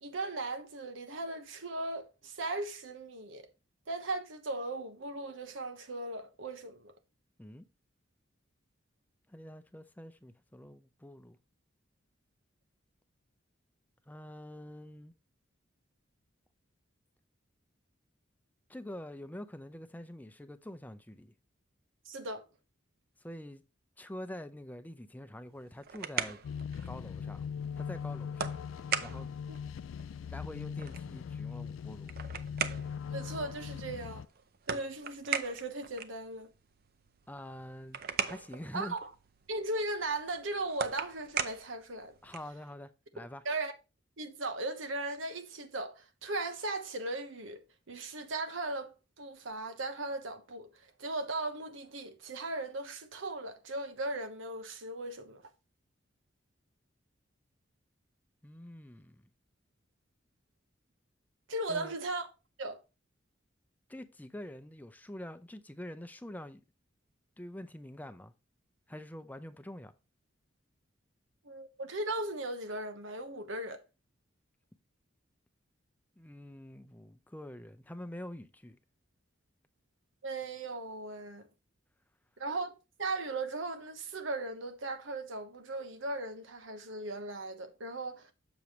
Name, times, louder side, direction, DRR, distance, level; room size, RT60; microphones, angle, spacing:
voice 1, 0.0-3.5 3.9-6.9 22.1-22.4 33.1-34.3 34.7-36.5 38.7-39.1 39.5-42.2 43.4-43.7 44.2-47.6 47.9-55.4 61.5-62.3 62.6-62.8 71.4-73.8 80.2-81.5 82.4-82.7 83.0-88.3, right 2 dB, 85° right, 1.1 m, -37 dB
voice 2, 9.3-11.4 14.1-15.1 18.7-21.3 23.2-23.6 24.0-26.4 26.8-27.4 27.8-28.5 29.0-29.3 30.3-32.1 37.3-38.0 38.3-38.9 42.2-43.4 58.4-59.3 61.7-61.9 63.9-66.6 67.4-68.3 68.9-69.9 76.2-78.8, left 1 dB, 10° left, 0.5 m, -46 dB
sound 1, 25.5-42.6, right 7 dB, 50° right, 0.6 m, -41 dB
sound 2, 26.4-34.3, left 7 dB, 85° left, 0.3 m, -40 dB
7.1 x 6.8 x 3.1 m
head